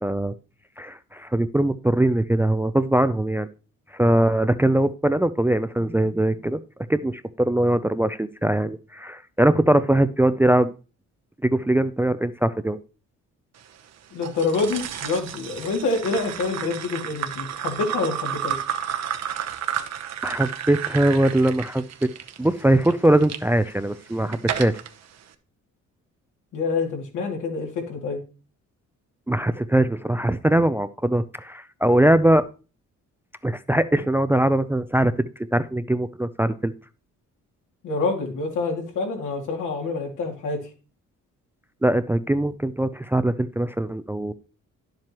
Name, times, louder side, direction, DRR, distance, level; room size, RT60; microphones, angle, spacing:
voice 1, 0.0-0.3 0.8-3.5 3.9-6.6 6.9-10.7 11.4-12.8 20.2-22.1 22.4-24.8 29.3-32.5 33.4-35.2 35.5-36.7 41.8-44.3, right 1 dB, 5° right, 12 dB, 0.4 m, -21 dB
voice 2, 5.8-6.5 14.1-18.6 26.5-28.2 37.8-40.6, left 3 dB, 80° left, 1 dB, 2.6 m, -27 dB
sound 1, 14.2-23.4 24.0-24.9, right 9 dB, 60° right, 0.9 m, -31 dB
10.5 x 7.6 x 3.0 m, 0.35 s
cardioid pair, 90°, 30 cm